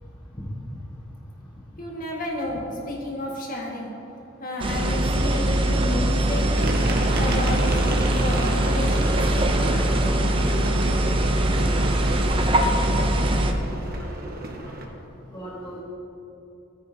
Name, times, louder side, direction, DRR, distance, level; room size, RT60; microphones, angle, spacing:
voice 1, 1.8-3.9 4.4-6.7 7.2-9.4, left 1 dB, 40° left, -2 dB, 1.7 m, -32 dB
sound 1, 4.6-13.5, right 1 dB, 25° right, 0.6 m, -22 dB
sound 2, 6.6-14.8, right 1 dB, 45° right, 1.0 m, -31 dB
voice 2, 9.7-10.9 11.2-13.3 13.7-14.3 14.6-14.7 15.3-15.8, right 1 dB, 20° left, -6 dB, 1.4 m, -38 dB
14.5 x 9.4 x 2.8 m, 2.9 s
head